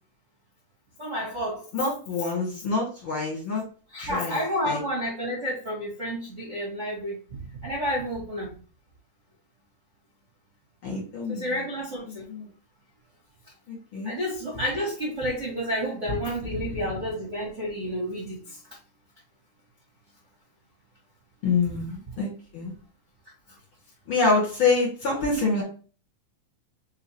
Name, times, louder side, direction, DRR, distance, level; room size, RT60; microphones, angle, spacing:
voice 1, 1.0-1.7 3.9-7.2 7.6-8.5 11.3-12.2 14.0-18.6, equal, 35° right, -5 dB, 1.3 m, -30 dB
voice 2, 1.7-3.6 4.0-4.8 10.8-11.4 12.3-12.5 13.7-14.1 16.5-16.7 21.4-22.7 24.1-25.6, left 3 dB, 45° left, -4 dB, 2.3 m, -26 dB
4.9 x 3.7 x 2.9 m, 0.38 s
omnidirectional pair, 3.9 m